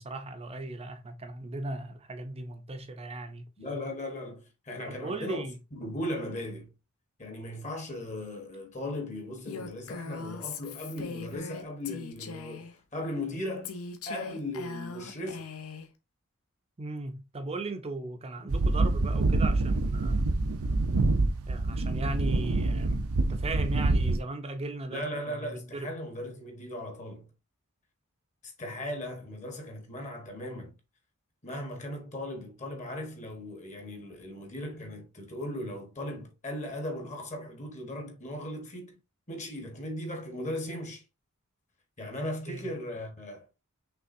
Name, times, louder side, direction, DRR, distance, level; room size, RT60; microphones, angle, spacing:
voice 1, 0.0-3.4 4.9-5.6 16.8-20.3 21.5-25.1 25.7-25.9 42.5-42.7, right 2 dB, 25° right, 0.6 m, -37 dB
voice 2, 3.6-5.4 5.7-6.7 7.2-13.8 14.1-15.5 24.9-27.3 28.4-30.7 31.4-39.0 39.3-41.0 42.0-43.4, left 1 dB, 35° left, 1.2 m, -37 dB
Female speech woman speaking, 9.5-12.8 13.6-15.9, left 4 dB, 75° left, 0.8 m, -40 dB
sound 1, 18.5-24.2, right 2 dB, 75° right, 0.6 m, -26 dB
5.7 x 3.4 x 2.6 m
head